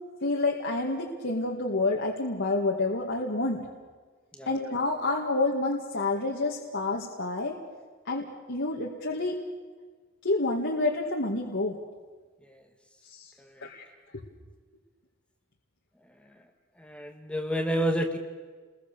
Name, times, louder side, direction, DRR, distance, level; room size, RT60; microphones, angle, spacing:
voice 1, 0.2-3.7 4.5-7.6 8.1-9.4 10.2-11.8 13.0-13.3 13.6-13.8, left 2 dB, 65° left, -1 dB, 2.2 m, -28 dB
voice 2, 16.8-18.2, equal, 5° left, 5 dB, 1.4 m, -28 dB
29.5 x 21.5 x 6.9 m, 1.5 s
head